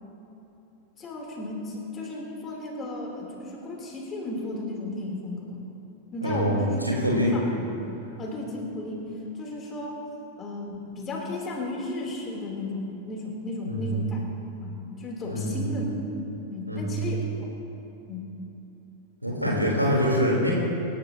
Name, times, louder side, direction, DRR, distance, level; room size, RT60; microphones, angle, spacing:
voice 1, 1.0-5.7 6.1-6.8 7.2-7.7 8.2-10.0 10.4-14.3 14.6-15.9 16.5-17.3 18.1-18.3, left 2 dB, 25° left, -2 dB, 3.6 m, -34 dB
voice 2, 6.2-7.3 13.7-13.9 15.2-15.6 16.7-17.0 19.2-20.5, equal, 90° right, -4 dB, 3.9 m, -25 dB
25.5 x 12.5 x 3.0 m, 2.9 s
figure-of-eight pair, 90°, 0 cm